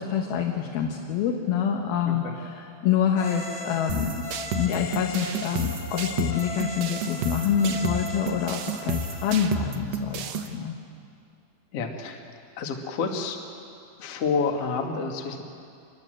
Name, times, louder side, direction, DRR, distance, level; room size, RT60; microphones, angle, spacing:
voice 1, 0.0-4.3 4.6-10.7, left 8 dB, 70° left, 1 dB, 3.2 m, -26 dB
voice 2, 2.1-2.4 11.7-12.2 12.6-13.4 14.0-15.4, left 4 dB, 50° left, 3 dB, 2.2 m, -29 dB
sound 1, 3.1-9.8, left 2 dB, 85° left, 3.6 m, -38 dB
sound 2, 3.9-10.5, right 4 dB, 70° right, 2.4 m, -32 dB
25.5 x 21.0 x 7.7 m, 2.5 s
omnidirectional pair, 4.6 m